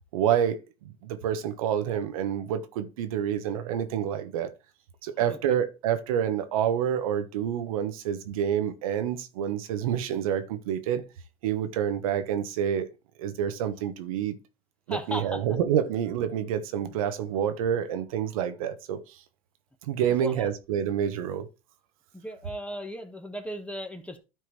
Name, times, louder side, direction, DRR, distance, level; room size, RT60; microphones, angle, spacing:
voice 1, 0.1-0.6 0.8-4.5 5.0-11.0 11.4-12.9 13.2-14.4 14.9-19.2 19.8-21.5, right 9 dB, 90° right, 1.0 m, -28 dB
voice 2, 14.9-15.4 16.9-17.0 20.0-20.5 22.1-24.2, equal, 5° left, 1.3 m, -36 dB
12.5 x 4.7 x 3.2 m
supercardioid pair, 105°, 17 cm